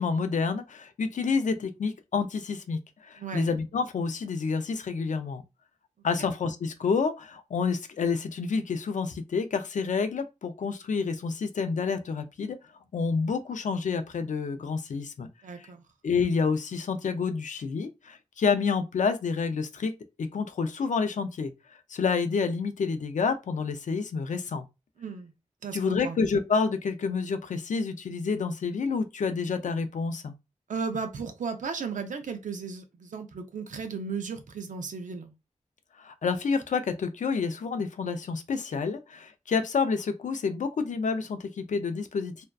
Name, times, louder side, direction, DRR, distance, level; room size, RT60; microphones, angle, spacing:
voice 1, 0.0-5.4 6.0-12.6 12.9-15.3 15.6-15.7 16.0-19.9 20.2-21.5 21.9-24.6 25.7-30.3 36.0-42.4, left 5 dB, 75° left, 0.4 m, -29 dB
voice 2, 3.2-3.5 15.4-15.8 25.0-25.3 25.6-26.2 30.7-35.3, right 5 dB, 80° right, 0.5 m, -35 dB
2.5 x 2.2 x 2.2 m
wide cardioid pair, 85°, 13 cm